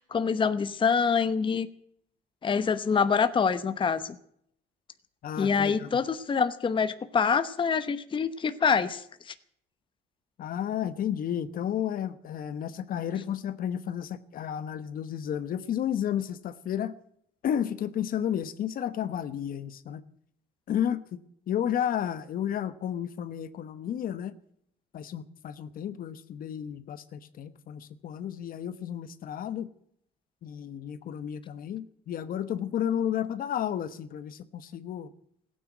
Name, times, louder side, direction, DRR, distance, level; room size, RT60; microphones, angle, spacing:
voice 1, 0.0-1.7 2.4-4.1 5.4-9.3, left 6 dB, 30° left, 11 dB, 0.9 m, -26 dB
voice 2, 5.2-6.0 10.4-16.9 17.4-20.0 20.7-21.2 21.5-24.3 24.9-29.7 30.4-35.1, left 9 dB, 55° left, 13 dB, 1.1 m, -32 dB
16.0 x 9.2 x 9.2 m, 0.69 s
cardioid pair, 110°, 17 cm